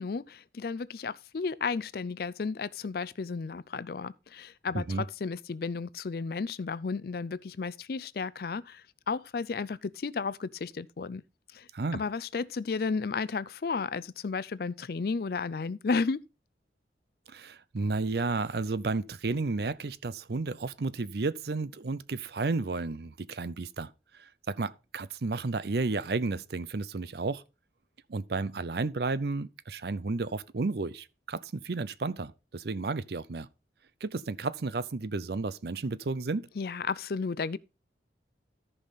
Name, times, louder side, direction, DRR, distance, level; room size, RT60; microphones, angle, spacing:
voice 1, 0.0-11.2 11.5-16.2 36.6-37.6, left 4 dB, 55° left, 0.4 m, -33 dB
voice 2, 4.7-5.1 11.7-12.0 17.3-27.4 28.1-33.5 34.0-36.5, right 3 dB, 60° right, 0.6 m, -32 dB
14.0 x 5.6 x 4.0 m
head